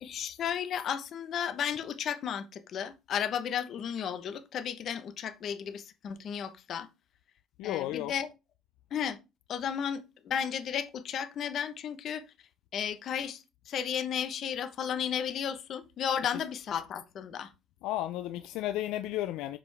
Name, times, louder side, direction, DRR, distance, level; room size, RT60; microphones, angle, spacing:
voice 1, 0.0-6.9 7.6-8.3 8.9-9.2 9.5-12.2 12.7-17.5, left 8 dB, 55° left, 1.0 m, -34 dB
voice 2, 7.6-8.1 17.8-19.6, left 14 dB, 80° left, 0.4 m, -33 dB
7.3 x 5.0 x 3.4 m
cardioid pair, 100°, 0 cm